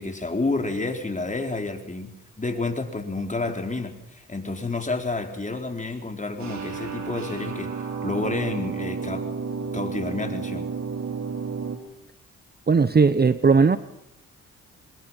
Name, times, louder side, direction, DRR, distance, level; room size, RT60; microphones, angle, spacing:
voice 1, 0.0-9.2 9.7-10.7, left 3 dB, 25° left, 4 dB, 4.2 m, -30 dB
sound 1, 6.4-11.8, right 5 dB, 60° right, 3.3 m, -31 dB
voice 2, 12.7-13.8, right 5 dB, 30° right, 14 dB, 1.0 m, -17 dB
23.0 x 20.5 x 5.7 m, 0.80 s
supercardioid pair, 55°, 32 cm